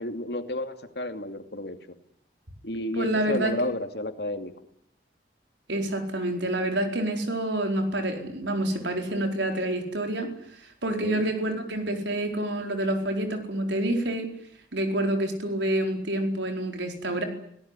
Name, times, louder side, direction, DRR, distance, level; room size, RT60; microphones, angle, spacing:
voice 1, 0.0-2.0 2.6-4.5 11.0-11.3, left 1 dB, 65° left, 7 dB, 2.6 m, -32 dB
voice 2, 2.9-3.5 5.7-14.3 14.7-17.2, right 1 dB, 90° right, 5 dB, 4.5 m, -28 dB
29.0 x 18.0 x 9.8 m, 0.74 s
head